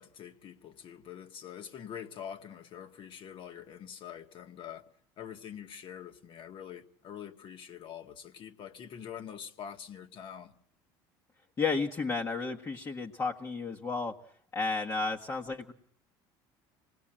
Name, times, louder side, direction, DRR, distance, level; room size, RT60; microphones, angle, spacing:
voice 1, 0.0-10.6, left 9 dB, 55° left, 1.8 m, -45 dB
voice 2, 11.6-14.1 14.5-15.7, left 4 dB, 30° left, 1.6 m, -32 dB
26.0 x 19.5 x 8.9 m
supercardioid pair, 90°, 11 cm